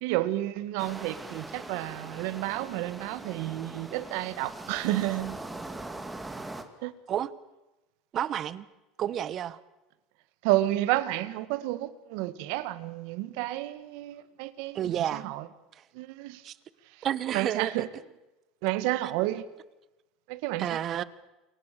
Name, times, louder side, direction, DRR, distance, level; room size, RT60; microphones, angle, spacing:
voice 1, 0.0-5.4 6.8-6.9 10.4-15.4 16.0-16.4 17.3-17.9 18.6-19.4 20.3-20.7 20.9-21.0, right 16 dB, 75° right, 1.8 m, -30 dB
sound 1, 0.8-6.6, right 2 dB, 10° right, 2.5 m, -41 dB
voice 2, 8.1-8.7 9.0-9.6 14.7-15.3 15.8-15.9 16.4-16.6 17.0-17.7 20.6-21.0, right 10 dB, 40° right, 1.3 m, -30 dB
29.0 x 23.5 x 6.9 m
supercardioid pair, 130°, 0 cm